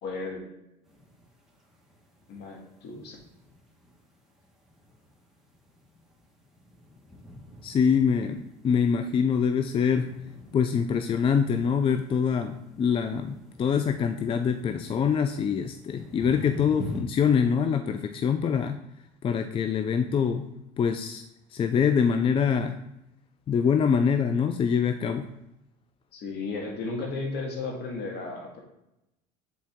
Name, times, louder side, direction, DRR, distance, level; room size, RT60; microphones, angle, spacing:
voice 1, 0.0-0.4 2.3-3.2 26.1-28.6, left 3 dB, 60° left, 0 dB, 1.9 m, -34 dB
sound 1, 0.8-17.0, left 2 dB, ahead, 1.4 m, -47 dB
voice 2, 7.6-10.1 10.5-18.8 19.2-20.5 20.8-21.2 21.5-22.8 23.5-25.3, left 7 dB, 30° left, 7 dB, 0.4 m, -24 dB
7.4 x 4.0 x 3.6 m, 0.87 s
supercardioid pair, 100°, 19 cm